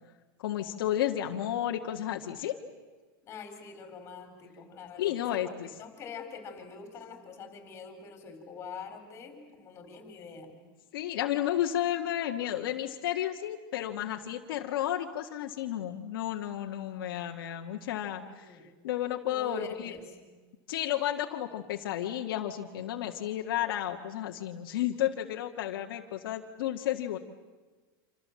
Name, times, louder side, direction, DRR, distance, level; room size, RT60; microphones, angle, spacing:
voice 1, 0.4-2.6 5.0-5.7 10.9-18.6 18.8-19.9 20.7-27.2, left 12 dB, 70° left, 2 dB, 1.8 m, -32 dB
voice 2, 3.2-5.4 5.8-10.6 18.2-18.7 19.3-20.1, left 4 dB, 20° left, 6 dB, 4.7 m, -44 dB
27.5 x 27.0 x 7.6 m, 1.3 s
supercardioid pair, 175°, 12 cm